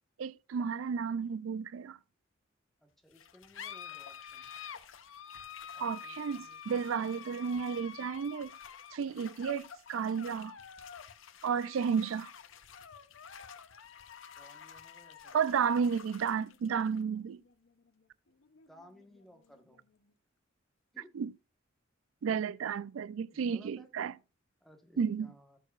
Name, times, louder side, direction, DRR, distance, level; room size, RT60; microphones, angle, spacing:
voice 1, 0.2-2.0 5.8-8.5 8.9-10.6 11.4-12.3 15.3-17.4 21.1-21.3 22.2-24.1 25.0-25.3, right 6 dB, 90° right, 0.4 m, -32 dB
voice 2, 2.8-4.7 5.7-7.2 9.1-9.5 14.4-15.7 18.7-19.9 20.9-21.1 22.3-22.5 23.3-23.9 24.6-25.6, equal, ahead, 1.3 m, -59 dB
sound 1, 3.1-20.1, left 8 dB, 80° left, 0.8 m, -49 dB
17.5 x 6.5 x 2.4 m
head